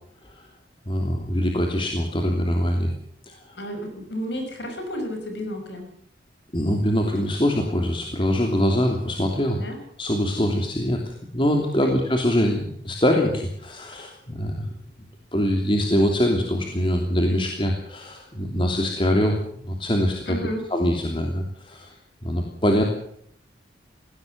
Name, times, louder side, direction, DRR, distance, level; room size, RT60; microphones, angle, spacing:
voice 1, 0.9-2.9 3.2-3.6 6.5-9.6 10.0-14.7 15.3-20.2 20.7-21.9 22.2-22.8, equal, 30° left, 2 dB, 3.0 m, -23 dB
voice 2, 3.5-5.9 9.5-9.8 11.8-11.9 20.3-20.6, equal, 65° left, 5 dB, 5.8 m, -32 dB
21.0 x 16.5 x 8.0 m, 0.66 s
head